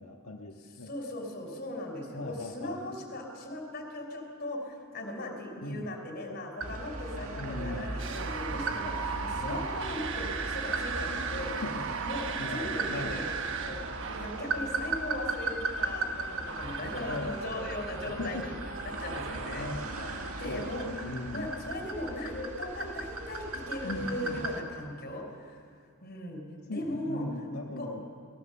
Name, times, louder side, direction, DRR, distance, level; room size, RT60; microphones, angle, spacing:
voice 1, 0.0-0.9 2.1-2.8 5.6-5.9 7.4-7.9 9.4-9.7 11.6-11.8 12.4-13.2 17.0-17.4 18.1-18.5 19.5-21.5 23.8-24.4 26.7-28.1, left 2 dB, 75° left, -1 dB, 1.5 m, -38 dB
voice 2, 0.8-11.5 12.0-13.3 13.6-18.5 18.8-19.7 20.1-25.6 26.0-27.5 27.8-27.9, left 1 dB, 45° left, 3 dB, 4.3 m, -38 dB
sound 1, 6.6-24.6, right 2 dB, 85° right, 2.0 m, -37 dB
sound 2, 8.0-20.9, right 5 dB, 60° right, 1.2 m, -39 dB
23.0 x 19.0 x 7.0 m, 2.2 s
head